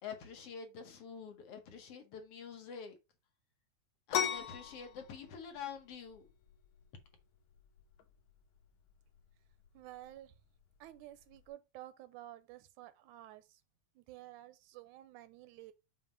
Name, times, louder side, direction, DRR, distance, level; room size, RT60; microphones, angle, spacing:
voice 1, 0.0-3.0 4.1-6.3, left 6 dB, 65° left, 1.6 m, -47 dB
sound 1, 4.1-11.5, left 9 dB, 90° left, 2.3 m, -41 dB
voice 2, 9.7-10.3 10.8-13.6 14.0-15.7, right 14 dB, 90° right, 2.1 m, -52 dB
7.3 x 2.7 x 5.2 m
omnidirectional pair, 3.3 m